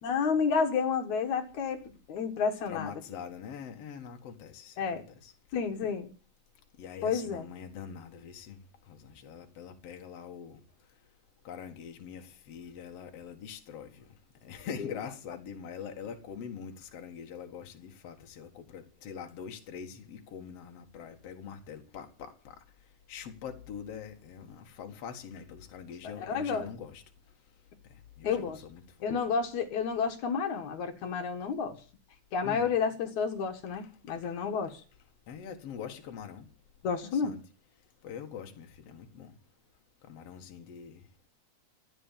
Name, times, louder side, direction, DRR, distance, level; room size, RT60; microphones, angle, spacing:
voice 1, 0.0-1.8 2.1-2.9 4.8-5.0 5.5-6.1 7.0-7.5 26.0-26.7 28.2-28.6 29.0-31.8 32.3-34.8 36.8-37.3, left 6 dB, 70° left, 2.8 m, -30 dB
voice 2, 2.7-5.3 6.8-8.6 8.9-10.6 11.4-14.0 14.4-22.6 23.1-27.0 28.2-28.8 32.4-32.7 34.1-34.3 35.3-36.5 37.0-37.4 38.0-39.3 40.1-41.0, left 7 dB, 55° left, 2.7 m, -44 dB
14.5 x 11.0 x 7.4 m
omnidirectional pair, 3.5 m